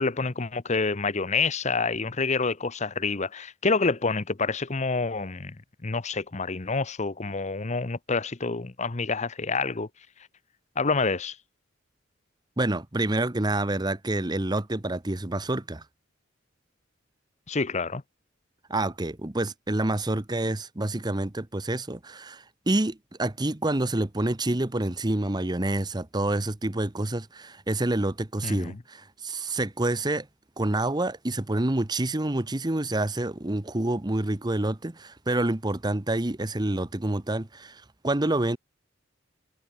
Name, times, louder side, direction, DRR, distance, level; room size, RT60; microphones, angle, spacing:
voice 1, 0.0-5.5 5.8-9.9 10.8-11.4 17.5-18.0 28.4-28.8, left 4 dB, 35° left, 0.8 m, -27 dB
voice 2, 12.6-15.8 18.7-30.3 30.6-38.6, right 2 dB, 20° right, 0.9 m, -28 dB
head